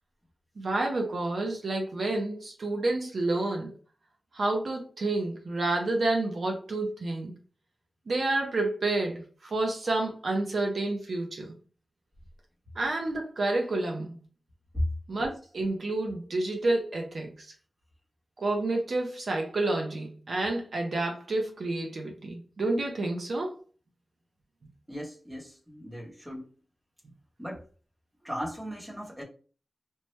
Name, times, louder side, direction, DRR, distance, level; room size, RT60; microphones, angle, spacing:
voice 1, 0.6-3.7 4.3-7.3 8.1-11.5 12.8-14.2 15.1-17.5 18.4-23.6, right 2 dB, 65° right, 0.6 m, -29 dB
voice 2, 24.9-26.5 27.4-27.7 28.2-29.2, equal, 15° right, 0.9 m, -36 dB
3.0 x 2.1 x 3.0 m
wide cardioid pair, 120°, 0 cm